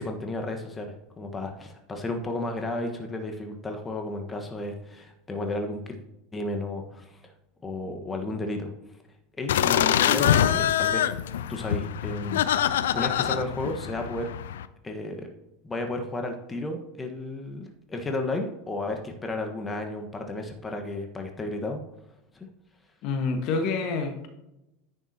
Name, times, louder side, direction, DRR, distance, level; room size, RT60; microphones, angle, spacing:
voice 1, 0.0-5.8 6.3-7.2 7.6-8.7 9.4-11.0 11.5-14.3 14.8-15.3 15.6-21.8 22.3-22.5, left 2 dB, 20° left, 4 dB, 1.4 m, -33 dB
sound 1, 9.5-14.7, left 10 dB, 75° left, 0.4 m, -25 dB
voice 2, 23.0-24.3, left 4 dB, 55° left, 6 dB, 1.5 m, -27 dB
10.5 x 9.5 x 2.9 m, 0.90 s
hypercardioid pair, 80°, 0 cm